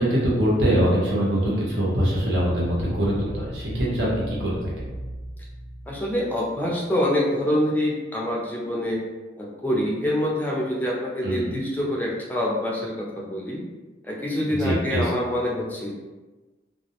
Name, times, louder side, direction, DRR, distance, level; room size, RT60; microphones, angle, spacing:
voice 1, 0.0-4.7 11.2-11.6 14.5-15.1, equal, 85° right, -5 dB, 0.8 m, -23 dB
sound 1, 1.9-6.6, equal, 55° right, 0.4 m, -37 dB
voice 2, 5.9-9.0 9.4-13.6 14.0-15.9, left 1 dB, 10° left, -4 dB, 0.3 m, -26 dB
2.3 x 2.0 x 2.7 m, 1.2 s
head